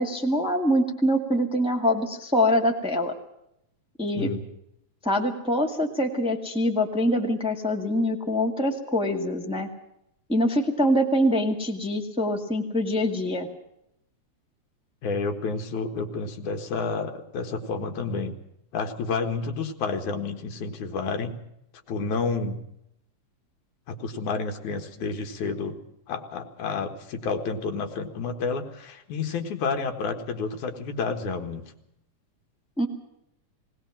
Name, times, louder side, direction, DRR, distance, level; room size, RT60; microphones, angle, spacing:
voice 1, 0.0-3.1 4.0-4.3 5.0-9.7 10.3-13.5 32.8-32.9, equal, ahead, 2 dB, 1.5 m, -24 dB
voice 2, 15.0-18.3 18.7-21.3 21.9-22.6 23.9-25.8 26.1-31.6, left 4 dB, 80° left, 6 dB, 3.1 m, -30 dB
19.5 x 19.0 x 7.4 m, 0.78 s
omnidirectional pair, 3.4 m